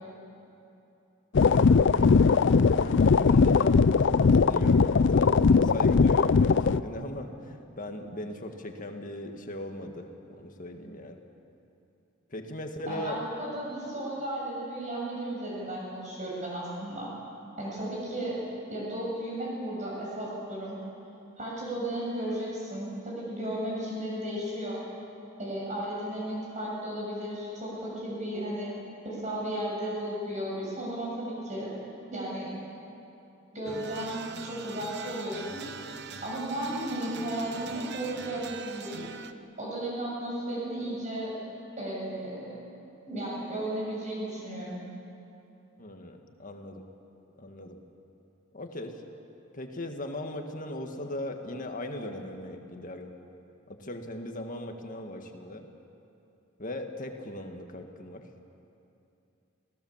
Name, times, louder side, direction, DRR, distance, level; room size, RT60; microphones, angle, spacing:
sound 1, 1.3-6.8, left 5 dB, 60° left, 0.4 m, -20 dB
voice 1, 2.7-3.9 4.4-11.2 12.3-13.2 45.8-46.8 47.4-47.8 48.5-49.0 49.5-53.1 53.7-55.7 56.6-58.3, left 1 dB, 40° left, 4 dB, 1.8 m, -38 dB
voice 2, 12.9-17.1 17.6-18.4 18.7-20.8 21.4-24.8 25.4-28.7 29.0-31.7 32.1-32.5 33.5-35.6 36.2-39.0 39.6-41.3 41.8-42.6 43.1-44.8, right 1 dB, 35° right, -5 dB, 7.1 m, -34 dB
sound 2, 33.7-39.3, right 6 dB, 55° right, 0.9 m, -42 dB
28.0 x 18.0 x 7.4 m, 2.8 s
head